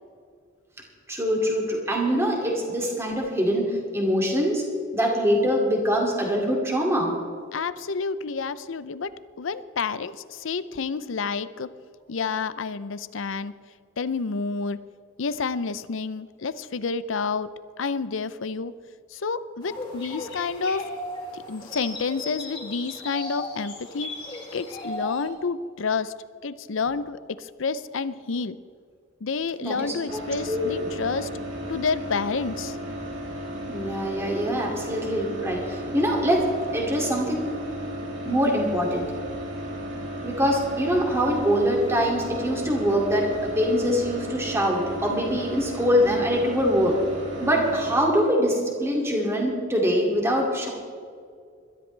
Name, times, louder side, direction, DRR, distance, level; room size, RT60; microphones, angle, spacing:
voice 1, 1.1-4.6 4.9-7.1 29.6-30.2 30.5-30.7 33.7-36.5 36.7-37.5 38.2-39.1 40.2-47.0 47.4-50.7, equal, 15° right, -1 dB, 2.6 m, -24 dB
voice 2, 7.5-11.7 12.1-13.5 14.0-14.8 15.2-17.5 17.8-18.7 19.1-20.9 21.3-24.1 24.5-26.1 26.4-28.6 29.2-31.3 31.7-32.8, left 4 dB, 70° left, 15 dB, 0.6 m, -29 dB
sound 1, 19.6-25.3, left 2 dB, 25° left, 2.5 m, -36 dB
sound 2, 30.1-48.0, equal, 60° right, 3.2 m, -35 dB
21.5 x 13.5 x 3.4 m, 2.2 s
head